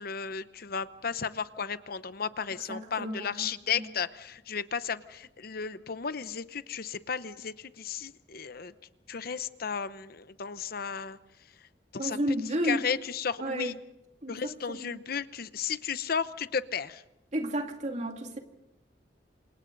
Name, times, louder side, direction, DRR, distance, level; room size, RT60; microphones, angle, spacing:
voice 1, 0.0-8.7 9.1-11.2 11.9-12.2 12.6-13.7 14.3-17.0, left 6 dB, 60° left, 0.8 m, -34 dB
voice 2, 2.7-3.8 12.0-12.9 13.4-13.7 14.2-15.0 17.3-18.4, right 1 dB, 40° right, 2.5 m, -33 dB
28.5 x 27.0 x 4.0 m
head